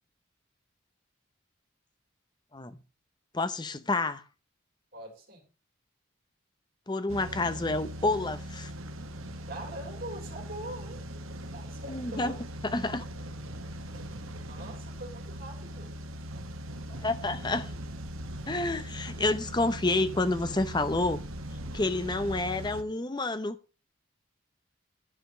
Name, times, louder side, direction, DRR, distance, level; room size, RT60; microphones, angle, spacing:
voice 1, 3.3-4.2 6.9-8.7 11.9-12.4 12.6-13.1 17.0-17.7 18.5-21.2 21.7-23.6, left 2 dB, 20° left, 0.7 m, -29 dB
voice 2, 4.9-5.4 9.5-11.0 11.5-12.4 13.8-16.0, right 1 dB, 45° right, 3.7 m, -43 dB
sound 1, 7.1-22.8, equal, 85° right, 1.2 m, -40 dB
11.0 x 5.1 x 6.1 m
head